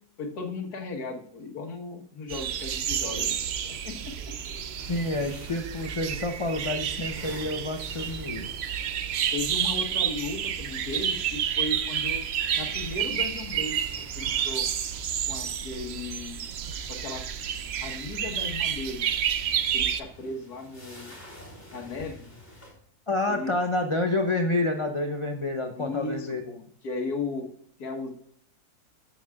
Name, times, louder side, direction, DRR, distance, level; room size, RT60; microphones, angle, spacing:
voice 1, 0.2-3.4 3.6-4.1 9.3-12.2 12.6-14.7 15.3-16.5 16.9-17.3 17.8-19.0 19.7-21.1 21.7-22.3 23.3-23.6 25.8-27.4 27.8-28.1, left 3 dB, 80° left, 3 dB, 1.8 m, -36 dB
sound 1, 2.3-20.0, right 8 dB, 60° right, 0.7 m, -30 dB
sound 2, 4.7-9.3 12.1-16.1 19.8-22.7, left 1 dB, 10° left, 3.4 m, -49 dB
voice 2, 4.9-8.5 23.1-26.4, left 2 dB, 35° left, 4 dB, 0.5 m, -28 dB
13.5 x 7.0 x 2.3 m, 0.65 s
omnidirectional pair, 1.6 m